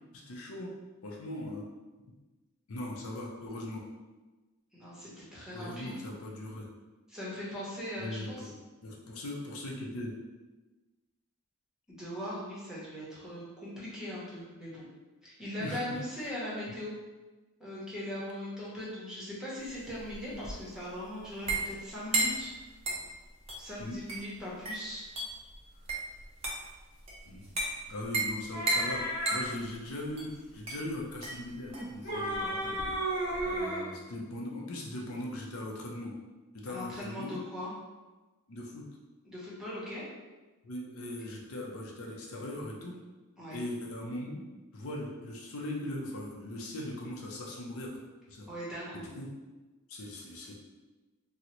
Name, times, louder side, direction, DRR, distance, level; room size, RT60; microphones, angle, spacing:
voice 1, 0.1-0.7 1.0-1.6 2.7-3.8 5.5-6.7 8.0-8.5 8.8-10.1 15.6-15.8 16.7-16.8 23.8-24.0 27.3-27.5 27.9-32.8 33.5-36.1 36.5-37.4 38.5-38.9 40.6-43.0 43.5-44.4 44.7-47.9 48.3-48.5 49.0-49.3 49.9-50.5, left 1 dB, 70° left, -1 dB, 0.5 m, -39 dB
voice 2, 4.7-5.9 7.1-8.5 11.9-14.9 15.2-16.9 17.6-22.5 23.6-25.0 36.7-37.7 39.2-40.0 43.4-43.6 48.5-49.1, left 1 dB, 5° right, -8 dB, 0.8 m, -40 dB
sound 1, 19.6-33.6, right 2 dB, 25° right, 0.5 m, -36 dB
sound 2, 28.5-29.4 31.7-33.9, right 1 dB, 40° left, 1.1 m, -33 dB
3.7 x 2.0 x 2.9 m, 1.2 s
head